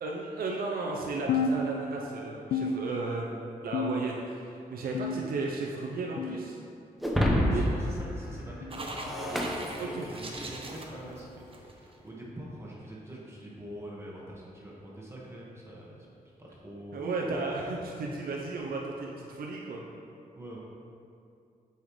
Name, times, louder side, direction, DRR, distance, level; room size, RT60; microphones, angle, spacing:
voice 1, 0.0-3.3 3.6-6.6 7.5-7.6 9.8-10.1 16.9-19.8, right 3 dB, 80° right, -2 dB, 0.7 m, -34 dB
sound 1, 1.3-2.1 2.5-3.3 3.7-4.3 4.9-5.6 6.2-6.5 7.4-7.6 8.6-8.8 9.8-10.0 11.0-11.2 12.3-12.5 13.5-13.7 14.7-14.8 15.9-16.0, left 3 dB, 85° left, 0.4 m, -33 dB
Shatter, 7.0-10.5, equal, ahead, 0.9 m, -29 dB
voice 2, 7.3-16.1 16.4-17.4 20.3-20.6, right 1 dB, 15° right, -5 dB, 1.6 m, -44 dB
sound 2, 8.7-12.0, right 2 dB, 35° right, 0.9 m, -42 dB
7.6 x 5.5 x 3.2 m, 2.5 s
cardioid pair, 75°, 15 cm